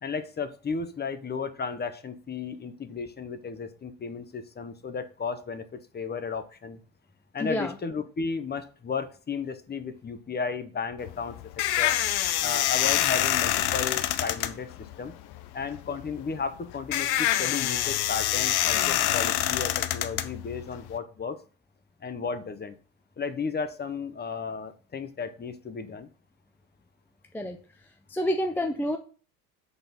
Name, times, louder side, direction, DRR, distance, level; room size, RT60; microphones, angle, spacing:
voice 1, 0.0-6.8 7.3-11.4 11.8-12.0 12.4-14.7 15.0-15.2 15.5-21.4 22.0-22.7 23.2-26.1, left 5 dB, 20° left, 11 dB, 0.8 m, -34 dB
voice 2, 7.4-7.7 27.3-27.6 28.1-29.0, equal, 5° left, 5 dB, 0.3 m, -28 dB
sound 1, 11.0-21.0, left 13 dB, 55° left, 0.7 m, -26 dB
5.8 x 4.0 x 5.3 m, 0.39 s
supercardioid pair, 95°, 46 cm